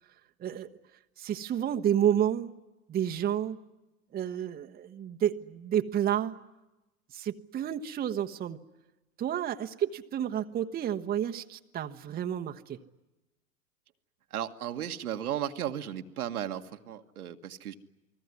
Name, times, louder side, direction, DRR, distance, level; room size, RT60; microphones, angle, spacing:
voice 1, 1.2-2.5 2.9-3.6 4.1-6.4 7.1-8.6 9.2-12.8, right 10 dB, 20° right, 5 dB, 1.2 m, -30 dB
voice 2, 14.3-17.7, right 10 dB, 70° right, 6 dB, 1.7 m, -35 dB
29.0 x 20.5 x 9.6 m, 1.0 s
hypercardioid pair, 105°, 45 cm